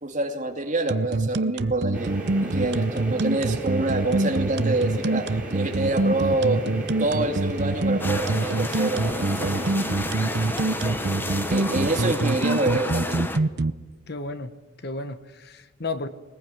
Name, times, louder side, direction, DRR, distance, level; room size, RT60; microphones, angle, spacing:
voice 1, 0.0-6.6 7.0-9.7 10.8-13.4, right 2 dB, 35° right, 3 dB, 2.6 m, -27 dB
sound 1, 0.9-13.7, right 2 dB, 50° right, 0.7 m, -25 dB
sound 2, 1.9-12.1, right 1 dB, 5° right, 4.8 m, -35 dB
sound 3, 8.0-13.4, left 1 dB, 10° left, 1.0 m, -32 dB
voice 2, 14.1-14.5 14.8-16.1, left 3 dB, 50° left, 11 dB, 1.1 m, -33 dB
21.0 x 20.5 x 9.3 m, 1.2 s
head